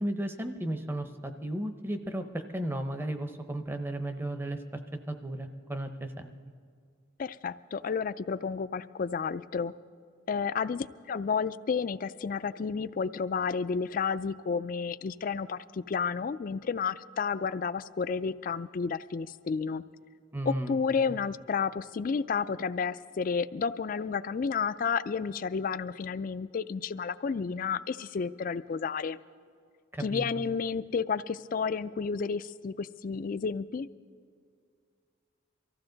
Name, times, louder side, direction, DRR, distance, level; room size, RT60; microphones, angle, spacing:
voice 1, 0.0-4.6 5.1-6.3 20.3-20.8 29.9-30.2, right 1 dB, 10° right, 8 dB, 0.7 m, -34 dB
voice 2, 7.2-9.7 10.3-19.8 20.5-29.2 30.0-33.9, left 5 dB, 45° left, 15 dB, 0.3 m, -31 dB
24.0 x 15.0 x 3.9 m, 2.2 s
head